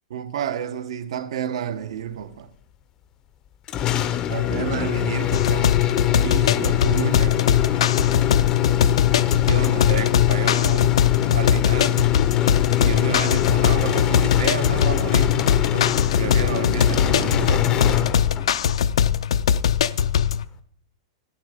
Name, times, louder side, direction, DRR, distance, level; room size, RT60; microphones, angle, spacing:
voice 1, 0.1-2.5 4.3-5.9 6.2-7.4 9.5-11.0 11.3-12.1 12.8-18.2, right 8 dB, 70° right, 1.0 m, -30 dB
sound 1, 3.7-18.6, left 13 dB, 20° left, 0.6 m, -23 dB
sound 2, 5.3-20.4, left 8 dB, 80° left, 0.5 m, -21 dB
13.0 x 9.3 x 5.0 m
supercardioid pair, 170°, 3 cm